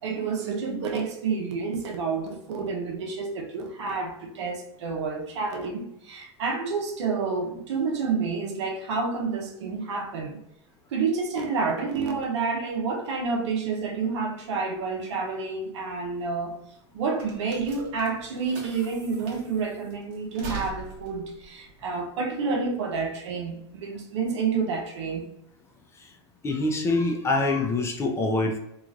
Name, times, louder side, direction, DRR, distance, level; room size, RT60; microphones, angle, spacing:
voice 1, 0.0-10.4 10.9-16.6 16.9-25.3, right 4 dB, 80° right, 0.7 m, -29 dB
sound 1, 15.9-22.7, right 3 dB, 55° right, 0.9 m, -43 dB
voice 2, 26.4-28.6, left 2 dB, 20° left, 0.4 m, -25 dB
3.0 x 2.4 x 2.5 m
hypercardioid pair, 120°, 15 cm